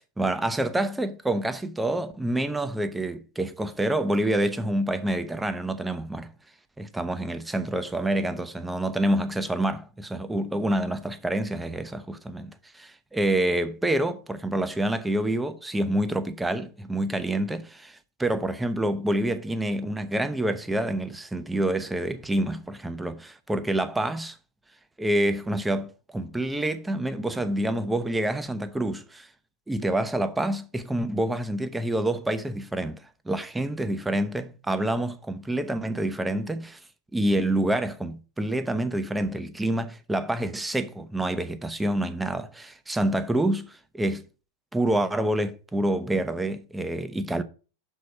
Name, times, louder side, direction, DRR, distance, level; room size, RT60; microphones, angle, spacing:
voice 1, 0.2-6.3 6.8-24.4 25.0-29.3 29.7-36.8 37.1-44.2 44.7-47.4, right 1 dB, 5° right, 0.6 m, -27 dB
6.4 x 4.1 x 5.8 m
figure-of-eight pair, 90°, 0 cm